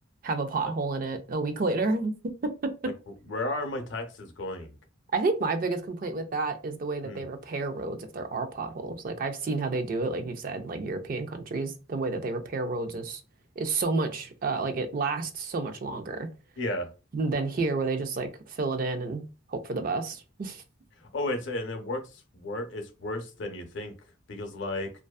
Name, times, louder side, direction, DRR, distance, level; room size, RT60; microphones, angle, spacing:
voice 1, 0.2-2.9 5.1-13.2 13.6-16.3 17.1-20.6, right 3 dB, 45° right, 0.4 m, -30 dB
voice 2, 3.2-4.8 7.0-7.2 16.6-16.9 21.0-23.9 24.3-24.9, left 2 dB, 65° left, 0.6 m, -33 dB
2.5 x 2.2 x 2.3 m
head